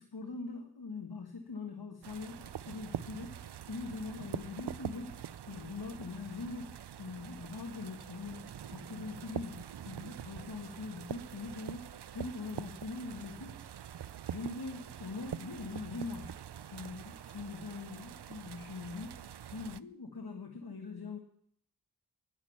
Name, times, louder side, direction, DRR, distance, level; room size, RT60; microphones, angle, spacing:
voice 1, 0.0-3.4 3.7-14.0 14.2-16.3 16.7-19.1 19.5-21.2, left 3 dB, 70° left, 3 dB, 1.6 m, -43 dB
sound 1, 2.0-19.8, right 9 dB, 80° right, 0.5 m, -45 dB
11.0 x 10.5 x 7.1 m, 0.68 s
wide cardioid pair, 55°, 40 cm